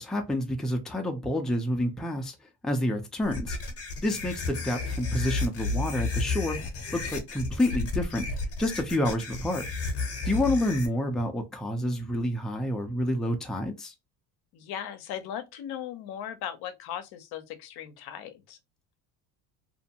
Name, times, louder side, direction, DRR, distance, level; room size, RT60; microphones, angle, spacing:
voice 1, 0.0-2.3 2.6-3.6 4.0-6.6 6.9-8.3 8.6-9.6 10.3-13.9, left 1 dB, ahead, 0.5 m, -28 dB
sound 1, 3.2-10.9, left 3 dB, 35° left, 0.9 m, -32 dB
voice 2, 14.5-18.6, left 10 dB, 60° left, 0.7 m, -38 dB
2.6 x 2.2 x 2.8 m
supercardioid pair, 80°, 43 cm